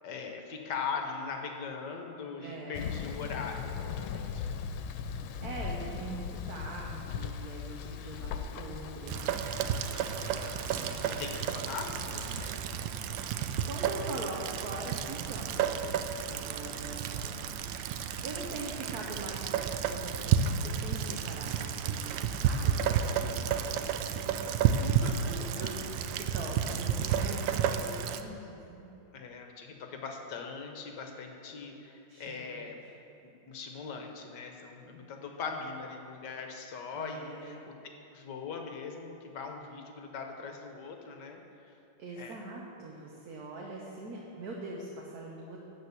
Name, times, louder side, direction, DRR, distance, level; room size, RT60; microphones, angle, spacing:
voice 1, 0.0-4.4 7.8-8.4 9.9-12.5 23.1-23.4 24.7-26.0 29.1-32.8 33.2-37.7 38.1-41.4 42.2-42.4, left 5 dB, 65° left, 3 dB, 1.4 m, -41 dB
voice 2, 2.4-2.8 5.4-9.8 10.7-11.6 13.6-17.5 17.9-19.5 19.9-24.7 25.2-29.0 32.1-32.7 36.9-37.6 42.0-45.6, right 2 dB, 55° right, -2 dB, 1.4 m, -43 dB
Thunder, 2.7-12.5, left 7 dB, 85° left, 1.4 m, -39 dB
Rain, 9.1-28.2, right 8 dB, 75° right, 1.2 m, -31 dB
12.5 x 4.5 x 8.2 m, 3.0 s
omnidirectional pair, 2.2 m